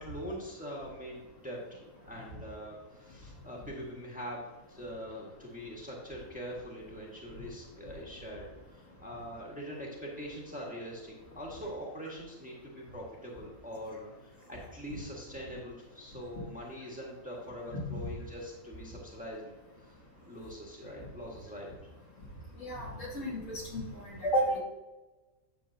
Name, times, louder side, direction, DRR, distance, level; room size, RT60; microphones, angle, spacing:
voice 1, 0.0-4.4 4.7-19.5 19.8-19.9 20.3-21.7, equal, 5° right, -3 dB, 1.6 m, -43 dB
voice 2, 22.6-23.8 24.2-24.6, right 1 dB, 65° left, -5 dB, 2.9 m, -31 dB
10.0 x 6.7 x 2.8 m, 1.1 s
omnidirectional pair, 1.4 m